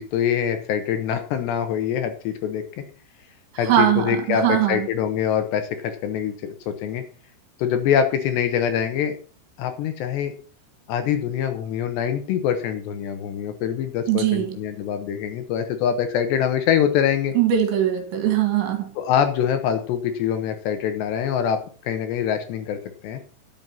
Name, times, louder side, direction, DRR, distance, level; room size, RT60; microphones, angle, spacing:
voice 1, 0.0-2.7 3.6-7.0 7.6-9.2 9.6-10.3 10.9-17.4 19.0-23.2, left 8 dB, 70° left, 8 dB, 3.1 m, -24 dB
voice 2, 3.5-4.9 14.1-14.6 17.3-18.9, right 10 dB, 75° right, 5 dB, 4.2 m, -21 dB
10.5 x 7.7 x 5.6 m, 0.40 s
omnidirectional pair, 5.4 m